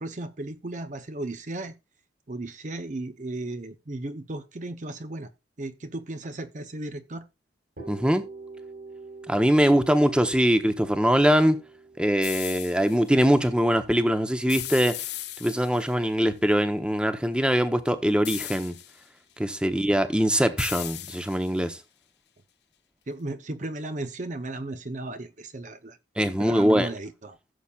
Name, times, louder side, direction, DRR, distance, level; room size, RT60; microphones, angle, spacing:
voice 1, 0.0-1.7 2.3-5.3 5.6-7.2 19.7-19.8 23.1-26.0 26.4-27.4, right 2 dB, 40° right, 0.7 m, -35 dB
sound 1, 7.8-15.5, right 3 dB, 70° right, 7.4 m, -46 dB
voice 2, 7.9-8.2 9.3-11.6 12.0-15.0 15.4-18.8 19.4-21.8 26.2-26.9, equal, 5° right, 0.8 m, -22 dB
sound 2, 12.2-13.0 14.5-15.9 18.2-19.0 20.6-21.6, left 13 dB, 65° left, 1.1 m, -36 dB
16.0 x 7.1 x 2.4 m
head